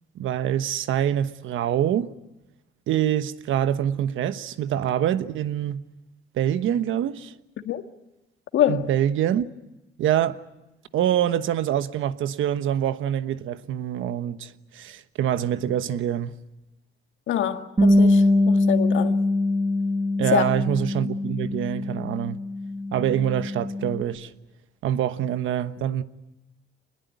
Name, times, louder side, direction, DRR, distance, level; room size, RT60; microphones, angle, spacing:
voice 1, 0.1-2.1 2.9-5.8 6.3-7.3 8.7-9.4 10.0-10.4 10.9-16.3 20.2-22.4 22.9-24.3 24.8-26.0, right 10 dB, 80° right, 1.2 m, -25 dB
voice 2, 8.5-8.9 17.3-19.2 20.3-20.5, left 11 dB, 75° left, 1.8 m, -25 dB
Bass guitar, 17.8-24.0, left 2 dB, 25° right, 5.9 m, -23 dB
25.0 x 21.0 x 9.4 m
cardioid pair, 90°, 20 cm